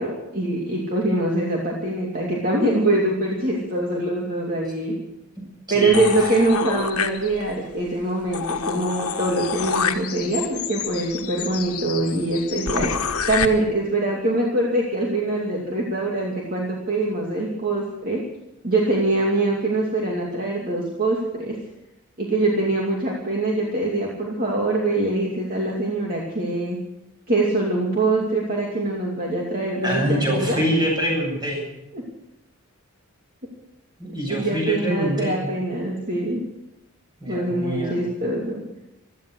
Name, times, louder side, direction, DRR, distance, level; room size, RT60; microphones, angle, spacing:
voice 1, 0.0-4.9 5.7-18.2 18.6-21.6 22.2-26.8 27.3-30.6 31.9-32.0 34.3-36.4 37.3-38.6, right 2 dB, 40° right, -2 dB, 2.6 m, -23 dB
voice 2, 5.7-6.3 29.8-31.6 34.0-35.4 37.2-38.0, equal, 20° right, -1 dB, 7.8 m, -25 dB
sound 1, 5.9-7.6 8.0-8.1 8.3-13.5, left 6 dB, 90° left, 1.3 m, -28 dB
17.0 x 13.0 x 6.5 m, 0.87 s
head